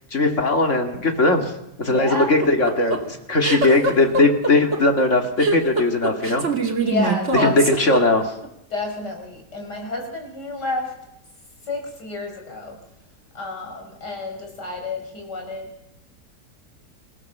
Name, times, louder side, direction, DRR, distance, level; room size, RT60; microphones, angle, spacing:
voice 1, 0.1-1.5 1.8-6.4 7.4-8.3, left 2 dB, 45° left, 4 dB, 2.7 m, -19 dB
voice 2, 1.8-2.3 6.8-7.8 8.7-10.9 11.7-12.8 13.3-15.7, left 2 dB, 85° left, 2 dB, 5.9 m, -30 dB
sound 1, 2.2-8.5, right 3 dB, 45° right, 2.8 m, -23 dB
27.5 x 16.0 x 6.8 m, 0.85 s
omnidirectional pair, 1.8 m